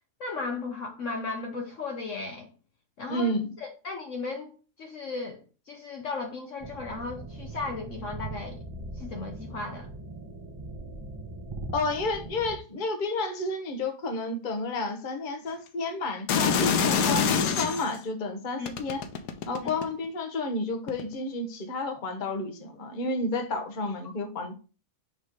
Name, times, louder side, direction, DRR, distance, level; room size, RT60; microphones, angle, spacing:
voice 1, 0.2-2.5 3.0-4.5 4.8-8.6 9.0-9.9 18.6-18.7, left 3 dB, 55° left, 1.0 m, -36 dB
voice 2, 3.1-3.5 11.7-19.0 19.5-24.6, left 2 dB, 35° left, 1.0 m, -31 dB
sound 1, 6.6-12.6, right 2 dB, 35° right, 0.4 m, -40 dB
sound 2, 16.3-18.0 18.7-20.1 20.9-21.0, left 6 dB, 85° left, 1.3 m, -25 dB
6.4 x 3.1 x 5.0 m
omnidirectional pair, 1.7 m